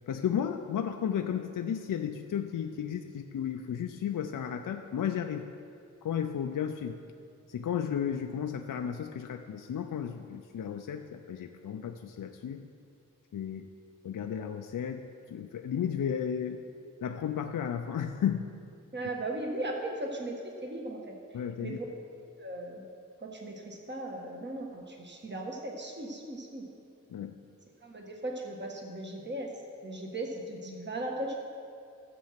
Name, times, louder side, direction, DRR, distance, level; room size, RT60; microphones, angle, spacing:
voice 1, 0.1-5.5 6.0-7.0 7.5-12.6 13.3-13.7 14.0-15.0 15.3-16.6 17.0-18.5 21.3-21.8 27.1-27.4, left 8 dB, 75° left, 5 dB, 0.6 m, -33 dB
voice 2, 18.9-21.1 21.6-21.8 22.4-22.8 23.2-26.6 27.8-29.5 29.8-31.4, right 1 dB, 35° right, 0 dB, 1.5 m, -37 dB
13.5 x 7.6 x 5.8 m, 2.4 s
wide cardioid pair, 115°, 33 cm